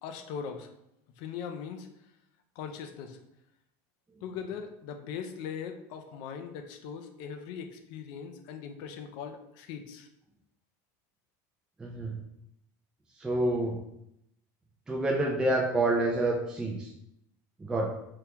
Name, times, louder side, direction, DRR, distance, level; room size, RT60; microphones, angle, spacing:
voice 1, 0.0-0.7 1.2-1.9 2.6-3.2 4.2-10.1, left 7 dB, 60° left, 6 dB, 0.4 m, -40 dB
voice 2, 11.8-12.1 13.2-13.8 14.9-16.9 17.6-17.9, right 2 dB, 10° right, -1 dB, 0.3 m, -28 dB
3.4 x 2.3 x 2.8 m, 0.81 s
supercardioid pair, 140°, 9 cm